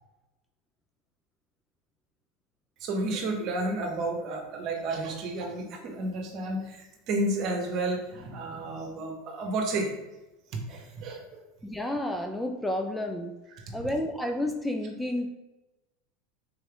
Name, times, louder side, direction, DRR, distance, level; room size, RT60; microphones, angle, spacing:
voice 1, 2.8-9.9 10.5-11.4 13.6-13.8, right 2 dB, 50° right, 2 dB, 1.0 m, -31 dB
voice 2, 11.6-13.4 13.7-15.3, left 1 dB, 5° left, 4 dB, 0.4 m, -30 dB
3.8 x 3.3 x 3.4 m, 1.0 s
hypercardioid pair, 90°, 0 cm